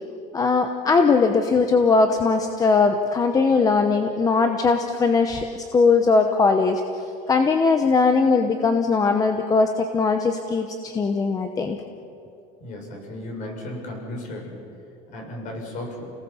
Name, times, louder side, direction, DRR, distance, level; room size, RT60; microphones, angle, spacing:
voice 1, 0.3-5.5 5.7-6.8 7.3-11.8, left 4 dB, 20° left, 6 dB, 0.9 m, -20 dB
voice 2, 12.6-14.6 15.1-16.1, left 1 dB, 45° left, 1 dB, 6.7 m, -35 dB
30.0 x 18.5 x 7.2 m, 2.7 s
cardioid pair, 160°, 19 cm